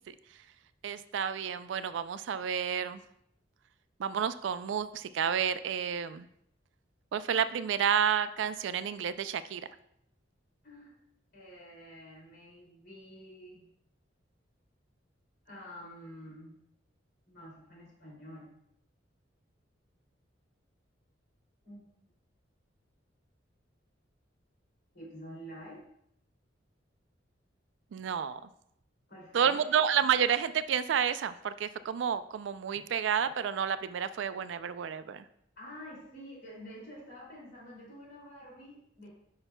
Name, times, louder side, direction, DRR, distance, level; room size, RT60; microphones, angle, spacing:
voice 1, 0.8-3.0 4.0-6.3 7.1-9.6 27.9-28.4 29.3-35.2, right 8 dB, 70° right, 13 dB, 0.3 m, -30 dB
voice 2, 11.3-13.6 15.4-16.6 17.3-18.5 21.6-21.8 24.9-25.8 29.1-29.7 32.7-32.8 35.6-39.1, equal, 60° left, -4 dB, 2.6 m, -48 dB
8.9 x 5.6 x 2.2 m, 0.73 s
head